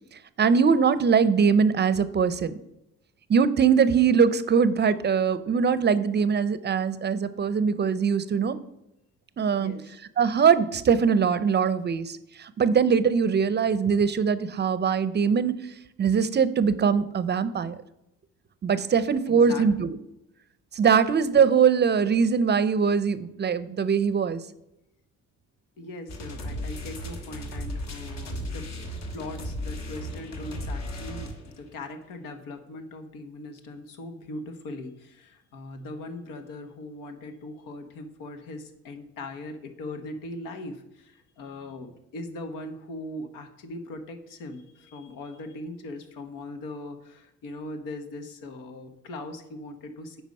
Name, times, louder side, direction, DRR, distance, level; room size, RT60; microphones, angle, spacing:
voice 1, 0.4-2.5 3.3-8.6 9.4-9.7 10.2-15.6 16.0-17.7 18.6-20.0 20.7-24.4, right 6 dB, 35° right, 15 dB, 0.5 m, -22 dB
voice 2, 9.6-9.9 19.3-19.9 25.8-28.7 29.1-50.2, left 2 dB, 85° left, 7 dB, 1.3 m, -40 dB
sound 1, 26.1-31.7, left 1 dB, 55° left, 1.6 m, -35 dB
9.0 x 5.0 x 5.3 m, 0.87 s
cardioid pair, 100°, 32 cm